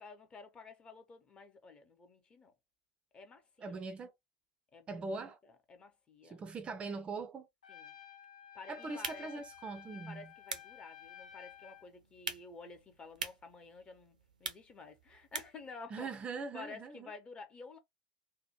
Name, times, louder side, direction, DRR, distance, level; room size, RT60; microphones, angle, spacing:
voice 1, 0.0-2.5 3.1-3.8 4.7-6.4 7.7-7.9 8.5-9.3 10.0-16.1 16.5-17.8, left 4 dB, 25° left, 0.8 m, -51 dB
voice 2, 3.6-4.1 4.9-5.4 6.2-7.5 8.7-10.3 15.9-17.1, right 4 dB, 25° right, 0.4 m, -41 dB
Trumpet, 7.6-11.9, left 10 dB, 75° left, 0.6 m, -53 dB
sound 1, 8.8-15.7, right 5 dB, 80° right, 0.5 m, -46 dB
2.8 x 2.2 x 2.9 m
figure-of-eight pair, 75°, 4 cm